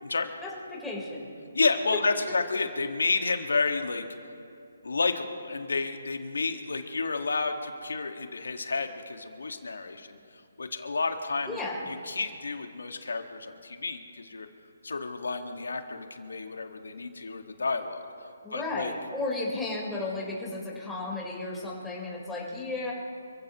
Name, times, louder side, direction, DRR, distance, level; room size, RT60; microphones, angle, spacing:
voice 1, 0.4-1.3 11.4-11.9 18.4-22.9, left 2 dB, 5° left, -5 dB, 4.2 m, -34 dB
voice 2, 1.5-4.0 4.8-10.2 10.6-11.6 11.9-14.5 14.8-18.0 18.5-18.9, left 4 dB, 80° left, 5 dB, 1.8 m, -30 dB
28.0 x 15.5 x 3.1 m, 2.5 s
figure-of-eight pair, 150°, 0 cm